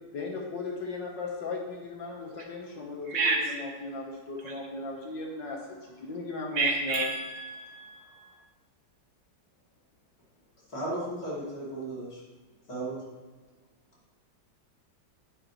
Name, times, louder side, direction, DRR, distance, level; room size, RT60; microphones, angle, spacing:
voice 1, 0.1-7.1, left 3 dB, 70° left, 0 dB, 1.9 m, -37 dB
voice 2, 3.1-3.6 6.5-8.3, right 3 dB, 60° right, 3 dB, 1.3 m, -30 dB
voice 3, 10.7-12.1 12.7-13.0, right 1 dB, 50° left, -6 dB, 3.5 m, -34 dB
10.0 x 9.8 x 3.1 m, 1.2 s
omnidirectional pair, 2.1 m